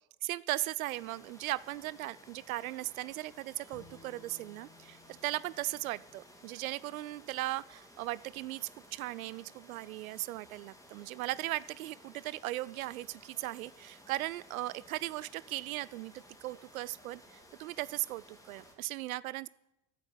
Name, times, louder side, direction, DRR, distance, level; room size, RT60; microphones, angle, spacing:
voice 1, 0.2-19.5, right 17 dB, 65° right, 20 dB, 0.5 m, -38 dB
sound 1, 0.8-18.7, equal, 5° left, 3.9 m, -57 dB
Bowed string instrument, 3.7-7.0, left 5 dB, 55° left, 4.6 m, -60 dB
13.0 x 7.9 x 9.5 m, 0.89 s
figure-of-eight pair, 75°, 45 cm